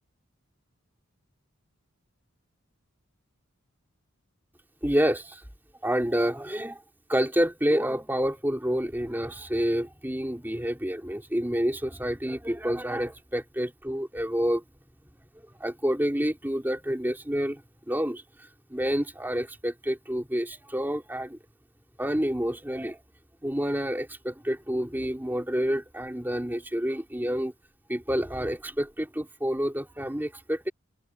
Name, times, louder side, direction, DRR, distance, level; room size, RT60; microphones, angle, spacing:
voice 1, 4.8-5.4 5.8-6.8 7.1-14.6 15.6-17.6 17.9-18.2 18.7-21.4 22.0-23.0 23.4-27.5 27.9-30.7, equal, 10° right, 2.7 m, -28 dB
head